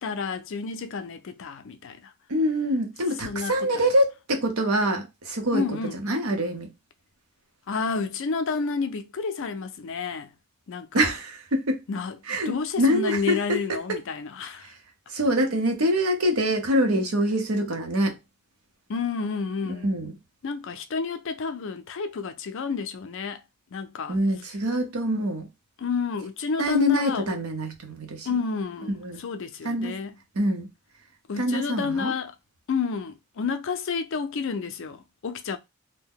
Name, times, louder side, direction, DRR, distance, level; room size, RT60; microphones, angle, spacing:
voice 1, 0.0-2.1 3.2-3.9 5.5-6.0 7.7-10.3 10.7-11.1 11.9-14.7 18.9-19.9 20.4-23.4 23.7-24.2 25.8-27.4 28.2-30.1 31.3-32.3 32.7-35.6, left 5 dB, 60° left, 0.4 m, -30 dB
voice 2, 2.3-6.7 10.9-11.8 12.3-13.8 14.6-14.7 15.1-18.2 19.8-20.1 24.1-25.5 26.6-28.4 29.0-29.2 29.6-30.0 30.4-30.7 31.4-32.1, equal, 75° right, 0.8 m, -25 dB
2.7 x 2.1 x 3.5 m
head